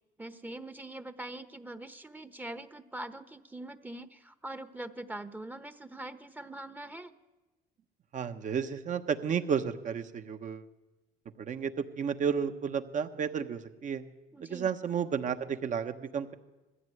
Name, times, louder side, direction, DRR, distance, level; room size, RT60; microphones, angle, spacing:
voice 1, 0.2-7.1 14.3-14.7, right 1 dB, 10° right, 11 dB, 1.1 m, -43 dB
voice 2, 8.1-10.7 11.4-14.0 14.5-16.3, right 7 dB, 50° right, 8 dB, 1.4 m, -32 dB
20.5 x 14.5 x 9.4 m, 1.1 s
cardioid pair, 110°, 17 cm